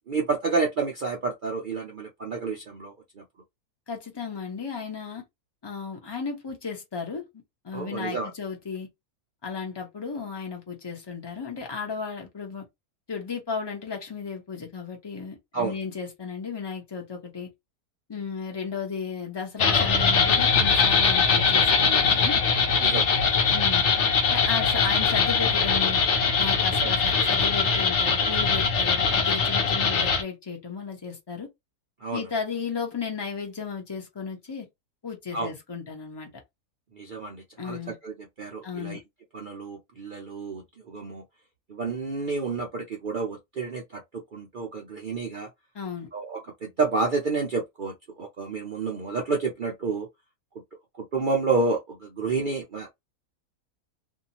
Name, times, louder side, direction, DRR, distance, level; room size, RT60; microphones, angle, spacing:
voice 1, 0.1-3.2 7.7-8.3 15.5-15.8 22.8-23.4 26.8-26.9 32.0-32.3 35.3-35.5 36.9-39.0 39.3-41.2 41.7-45.5 46.1-50.1 51.0-53.1, right 4 dB, 70° right, 0.4 m, -30 dB
voice 2, 3.9-5.2 5.6-7.3 7.6-8.9 9.4-12.6 13.1-17.5 18.1-22.4 23.5-23.9 24.3-26.0 26.4-31.5 32.1-34.7 35.0-36.3 37.6-38.0 38.6-39.0 45.7-46.1, left 5 dB, 25° left, 0.5 m, -34 dB
sound 1, 19.6-30.2, left 5 dB, 55° left, 0.9 m, -22 dB
2.6 x 2.4 x 2.8 m
omnidirectional pair, 1.6 m